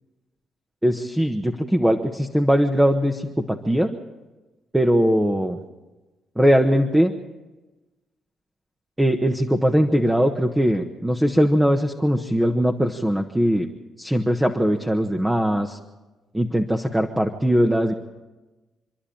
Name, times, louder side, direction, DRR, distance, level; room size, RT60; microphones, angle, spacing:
voice 1, 0.8-3.9 4.7-5.6 6.4-7.1 9.0-13.7 14.0-15.8 16.3-17.9, equal, 10° right, 4 dB, 1.3 m, -20 dB
27.0 x 11.5 x 8.8 m, 1.2 s
cardioid pair, 90°, 0 cm